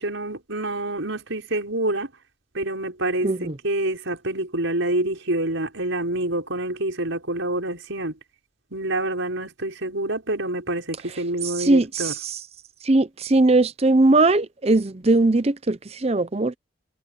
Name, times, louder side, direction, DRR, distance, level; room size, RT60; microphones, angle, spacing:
voice 1, 0.0-2.1 2.5-8.1 8.7-12.1, right 1 dB, 75° right, 5.5 m, -27 dB
voice 2, 3.2-3.6 11.4-12.4 12.8-16.5, right 2 dB, 30° right, 0.7 m, -20 dB
head